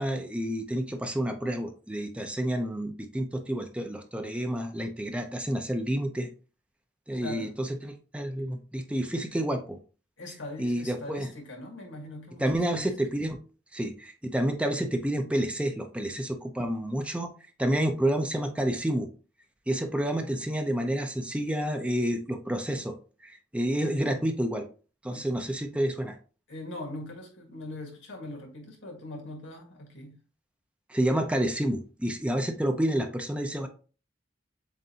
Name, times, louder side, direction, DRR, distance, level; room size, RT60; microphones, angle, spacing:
voice 1, 0.0-6.3 7.1-9.8 10.6-11.3 12.4-13.4 13.7-17.3 17.6-19.1 19.7-22.9 23.2-24.7 25.0-26.2 30.9-33.7, right 1 dB, 5° right, 0.5 m, -29 dB
voice 2, 7.2-7.6 10.2-12.9 25.1-25.3 26.5-30.2, left 1 dB, 90° left, 1.7 m, -41 dB
7.4 x 2.6 x 2.7 m
head